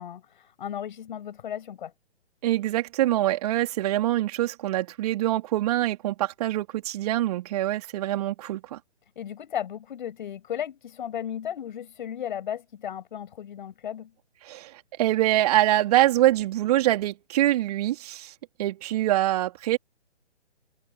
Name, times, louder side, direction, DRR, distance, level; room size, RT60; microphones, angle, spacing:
voice 1, 0.0-1.9 9.2-14.1, left 9 dB, 45° left, 7.4 m, -35 dB
voice 2, 2.4-8.8 14.4-14.7 15.0-18.3 18.6-19.8, right 14 dB, 35° right, 3.7 m, -24 dB
figure-of-eight pair, 135°, 34 cm